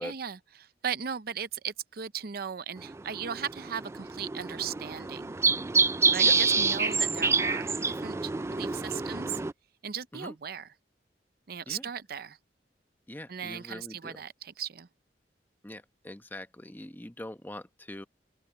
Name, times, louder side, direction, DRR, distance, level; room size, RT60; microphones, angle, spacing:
voice 1, 0.0-5.4 6.1-9.4 9.8-10.7 11.5-12.4 13.3-14.9, right 7 dB, 60° right, 0.6 m, -37 dB
sound 1, 2.8-9.5, right 4 dB, 15° right, 0.3 m, -27 dB
voice 2, 13.1-14.2 15.6-18.0, left 1 dB, 10° left, 0.9 m, -42 dB
head